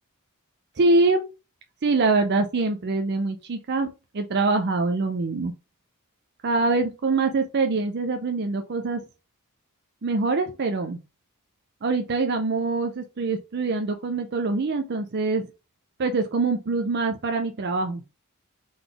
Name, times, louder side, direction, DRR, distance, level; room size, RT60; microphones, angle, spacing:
voice 1, 0.8-1.2 1.8-5.5 6.4-9.0 10.0-11.0 11.8-15.5 16.0-18.0, right 3 dB, 50° right, 0.5 m, -24 dB
3.9 x 3.9 x 3.4 m
head